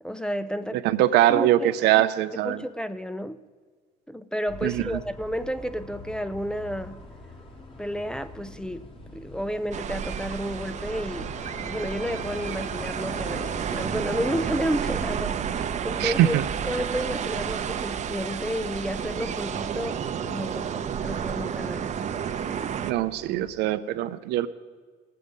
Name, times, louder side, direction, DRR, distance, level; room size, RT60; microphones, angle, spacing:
voice 1, 0.0-0.8 1.3-2.0 2.4-3.4 4.1-7.0 7.8-11.3 11.6-21.9, equal, 5° left, 0.4 m, -32 dB
voice 2, 0.8-2.6 4.6-4.8 16.0-16.4 22.8-24.5, right 13 dB, 85° right, 0.5 m, -22 dB
sound 1, 4.5-23.5, left 2 dB, 30° left, 1.6 m, -44 dB
sound 2, 9.7-22.9, right 8 dB, 45° right, 0.7 m, -31 dB
18.0 x 7.6 x 5.4 m
cardioid pair, 110°, 17 cm